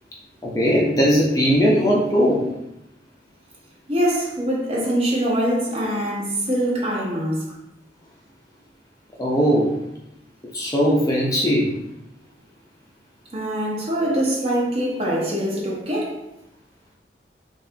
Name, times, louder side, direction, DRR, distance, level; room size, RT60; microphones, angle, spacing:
voice 1, 0.4-2.5 9.2-9.7 10.5-11.7, equal, 20° left, 0.4 m, -19 dB
voice 2, 3.9-7.5 13.3-16.2, equal, 35° right, 0.7 m, -23 dB
2.7 x 2.4 x 3.2 m
head